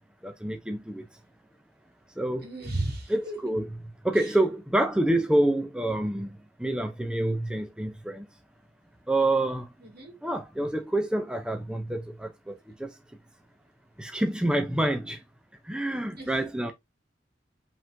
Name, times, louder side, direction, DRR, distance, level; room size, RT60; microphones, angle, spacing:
voice 1, 0.2-1.0 2.2-2.5 3.1-3.8 4.0-6.3 6.6-8.2 9.1-9.7 10.2-12.3 12.8-12.9 14.0-15.2 15.7-16.7, right 1 dB, 5° right, 0.5 m, -27 dB
voice 2, 2.4-3.4 4.2-4.3 9.8-10.1 16.2-16.3, right 1 dB, 55° right, 2.1 m, -34 dB
5.3 x 3.6 x 2.6 m
head